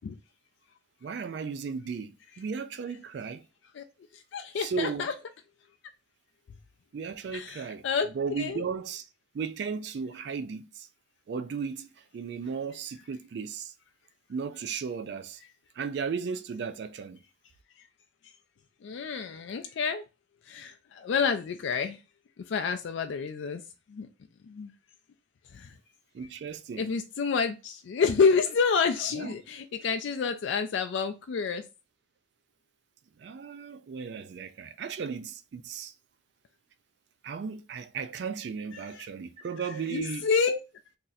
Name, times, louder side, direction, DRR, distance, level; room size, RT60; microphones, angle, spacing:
voice 1, 1.0-3.4 4.6-5.1 6.9-7.8 8.2-9.0 9.3-10.9 11.3-13.7 14.3-15.4 15.8-17.2 26.1-26.9 29.1-29.3 33.2-35.9 37.2-40.3, right 6 dB, 65° right, 0.3 m, -35 dB
voice 2, 4.1-5.1 7.3-8.7 17.8-17.9 18.2-18.3 18.8-20.0 20.4-22.0 22.4-23.6 23.9-24.1 24.4-24.7 25.5-25.7 26.2-26.3 26.8-31.6 38.7-39.0 39.6-40.6, left 5 dB, 70° left, 0.3 m, -29 dB
2.8 x 2.5 x 3.9 m
head